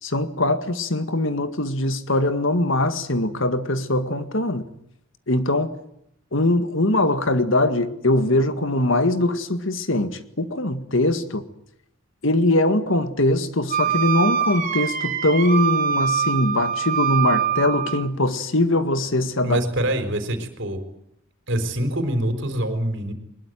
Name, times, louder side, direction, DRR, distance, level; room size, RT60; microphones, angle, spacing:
voice 1, 0.0-4.7 5.3-5.7 6.3-11.4 12.2-19.6, left 1 dB, 65° left, 2.0 m, -22 dB
Wind instrument woodwind instrument, 13.7-18.1, right 8 dB, 40° right, 3.5 m, -24 dB
voice 2, 19.4-20.8 21.5-23.1, right 1 dB, 60° right, 4.3 m, -25 dB
22.5 x 21.0 x 9.3 m
head